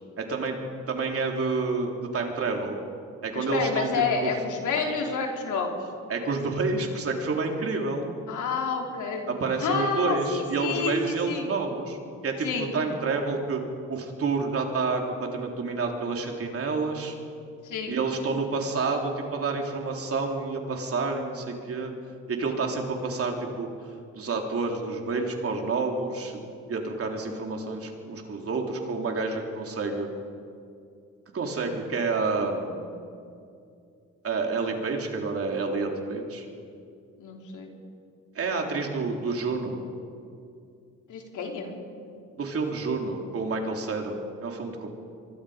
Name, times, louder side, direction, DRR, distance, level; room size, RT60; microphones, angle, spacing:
voice 1, 0.2-0.6 0.9-2.8 3.2-3.9 4.2-4.3 6.1-8.1 9.3-12.0 12.2-13.6 13.9-17.1 17.9-21.9 22.3-23.7 24.1-26.4 26.7-30.1 31.3-32.8 34.2-36.5 38.4-39.8 42.4-44.9, right 4 dB, 50° right, 2 dB, 3.5 m, -29 dB
voice 2, 3.3-5.8 8.3-9.3 9.6-11.5 12.4-12.7 17.6-18.0 37.2-37.7 41.1-41.8, left 5 dB, 80° left, 1 dB, 3.6 m, -29 dB
24.0 x 23.5 x 5.1 m, 2.5 s
cardioid pair, 90°, 30 cm